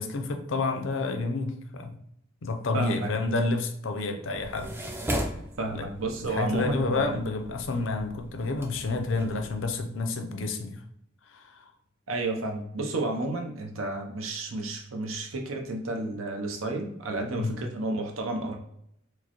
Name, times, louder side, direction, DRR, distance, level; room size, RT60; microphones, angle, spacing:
voice 1, 0.0-2.0 2.4-4.7 5.7-10.8 11.3-11.7 17.4-17.6, left 3 dB, 70° left, 0.5 m, -30 dB
voice 2, 2.7-3.1 5.6-7.2 12.1-18.6, right 2 dB, 85° right, 0.7 m, -31 dB
sound 1, 4.4-9.6, equal, 10° right, 0.3 m, -37 dB
4.5 x 2.1 x 2.9 m
head